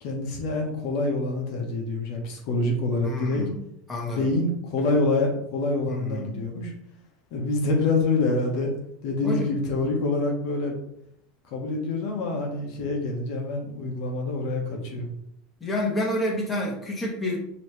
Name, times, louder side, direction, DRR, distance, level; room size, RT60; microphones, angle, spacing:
voice 1, 0.0-3.4 4.1-6.7 7.3-8.7 9.0-10.8 11.5-15.1, left 2 dB, 60° left, 1 dB, 1.0 m, -26 dB
voice 2, 3.0-3.6 3.9-4.3 5.9-6.3 9.2-9.5 15.6-17.4, left 1 dB, 15° left, -3 dB, 1.2 m, -29 dB
4.5 x 3.1 x 3.2 m, 0.75 s
supercardioid pair, 130°, 0 cm